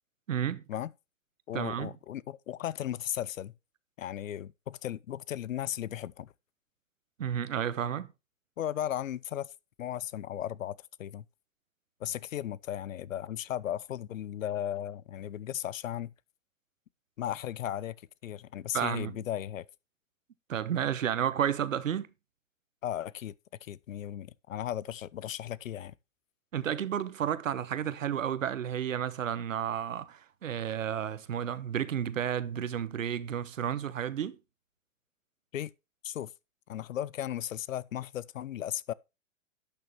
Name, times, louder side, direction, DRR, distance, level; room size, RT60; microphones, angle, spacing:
voice 1, 0.3-0.6 1.5-1.9 7.2-8.1 18.7-19.2 20.5-22.1 26.5-34.4, right 9 dB, 85° right, 1.0 m, -32 dB
voice 2, 1.5-3.5 4.0-6.3 8.6-9.5 9.8-11.2 12.0-16.1 17.2-17.9 18.2-19.6 22.8-23.3 23.6-25.9 35.5-35.7 36.0-36.3 36.7-38.9, left 11 dB, 85° left, 0.6 m, -36 dB
11.5 x 6.5 x 3.1 m
hypercardioid pair, 125°, 38 cm